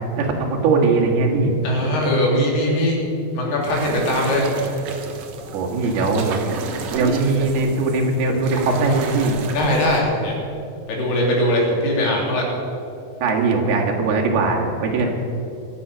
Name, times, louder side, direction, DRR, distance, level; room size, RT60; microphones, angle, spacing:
voice 1, 0.2-1.5 5.5-9.4 13.2-15.1, right 3 dB, 80° right, 0 dB, 3.9 m, -20 dB
voice 2, 1.6-3.0 3.3-4.5 9.5-10.3 10.9-12.5, left 1 dB, 85° left, -2 dB, 5.1 m, -20 dB
sound 1, 3.6-10.0, right 5 dB, 65° right, 1.8 m, -31 dB
23.0 x 8.0 x 6.2 m, 2.6 s
omnidirectional pair, 4.5 m